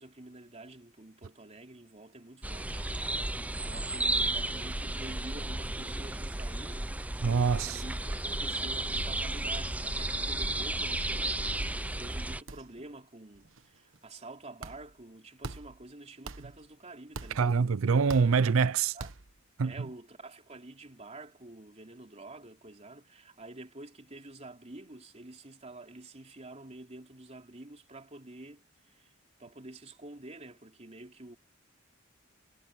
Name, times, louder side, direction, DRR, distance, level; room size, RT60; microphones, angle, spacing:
voice 1, 0.0-6.9 7.5-17.7 18.9-19.1 19.6-31.4, right 2 dB, 35° right, 3.3 m, -48 dB
sound 1, 2.4-12.4, right 2 dB, 5° right, 0.5 m, -33 dB
voice 2, 7.2-7.8 17.4-19.0 19.6-19.7, right 5 dB, 90° right, 0.5 m, -25 dB
sound 2, 9.9-10.1 10.4-10.5 10.7-11.3 11.7-11.8 12.5-13.0 13.3-14.0 14.6-15.0 15.4-15.9 16.3-16.7 17.1-17.6 18.1-18.6 19.0-19.4, right 3 dB, 70° right, 1.2 m, -45 dB
head